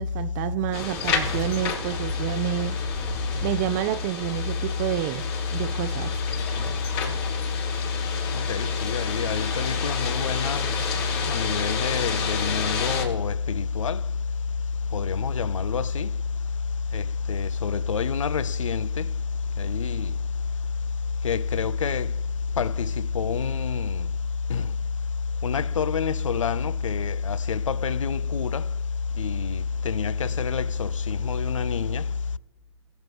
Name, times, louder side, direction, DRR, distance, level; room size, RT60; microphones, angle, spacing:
voice 1, 0.0-2.8 3.4-6.2, right 14 dB, 35° right, 0.4 m, -29 dB
sound 1, 0.7-13.0, left 5 dB, 55° left, 4.1 m, -31 dB
voice 2, 8.3-10.7 11.3-14.0 14.9-16.1 16.9-19.1 19.6-20.1 21.2-22.1 22.6-24.1 24.5-24.7 25.4-28.7 29.2-32.1, left 6 dB, 85° left, 0.4 m, -26 dB
22.0 x 7.8 x 3.0 m
hypercardioid pair, 120°, 16 cm